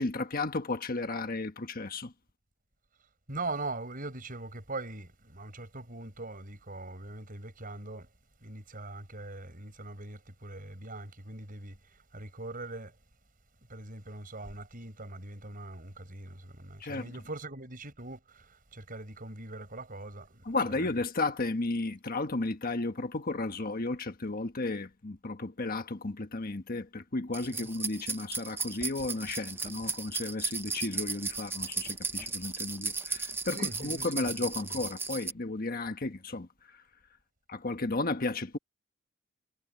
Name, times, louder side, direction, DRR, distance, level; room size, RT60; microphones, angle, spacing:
voice 1, 0.0-2.1 16.8-17.1 20.4-36.5 37.5-38.6, left 2 dB, 45° left, 1.4 m, -33 dB
voice 2, 3.3-8.1 8.4-12.9 13.7-20.7 27.5-27.7 33.5-34.8, right 2 dB, 45° right, 6.5 m, -42 dB
sound 1, 27.3-35.3, right 4 dB, 10° right, 0.9 m, -35 dB
head